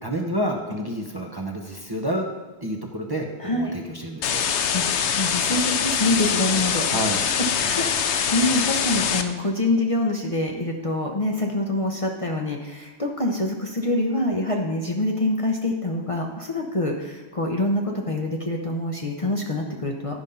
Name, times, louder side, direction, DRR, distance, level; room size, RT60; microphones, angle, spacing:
voice 1, 0.0-2.2 2.6-4.4 6.9-7.3, equal, 25° right, 0 dB, 0.8 m, -29 dB
voice 2, 3.4-3.7 4.7-4.9 5.2-6.9 7.5-20.2, left 1 dB, 35° left, 0 dB, 0.8 m, -25 dB
sound 1, 4.2-9.2, left 7 dB, 85° left, 0.9 m, -24 dB
11.5 x 5.2 x 5.5 m, 1.2 s
omnidirectional pair, 1.1 m